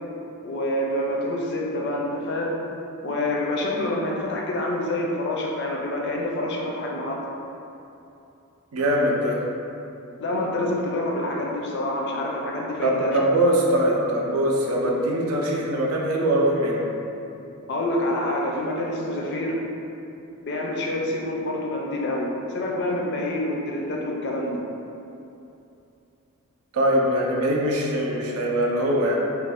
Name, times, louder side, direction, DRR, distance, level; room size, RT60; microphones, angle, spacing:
voice 1, 0.4-2.6 3.0-7.2 10.2-13.2 17.7-19.6 20.5-24.6, left 1 dB, 50° left, -1 dB, 0.4 m, -27 dB
voice 2, 8.7-9.4 12.8-16.9 26.7-29.1, right 1 dB, 75° right, -1 dB, 0.4 m, -22 dB
2.5 x 2.3 x 3.4 m, 2.8 s
head